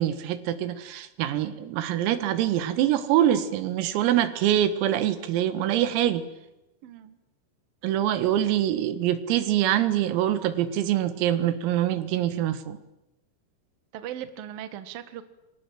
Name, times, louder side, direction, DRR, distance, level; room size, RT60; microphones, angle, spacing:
voice 1, 0.0-6.3 7.8-12.8, right 11 dB, 85° right, 12 dB, 4.3 m, -24 dB
voice 2, 6.8-7.2 13.9-15.2, right 11 dB, 60° right, 11 dB, 2.7 m, -38 dB
30.0 x 24.5 x 7.7 m, 0.92 s
omnidirectional pair, 6.0 m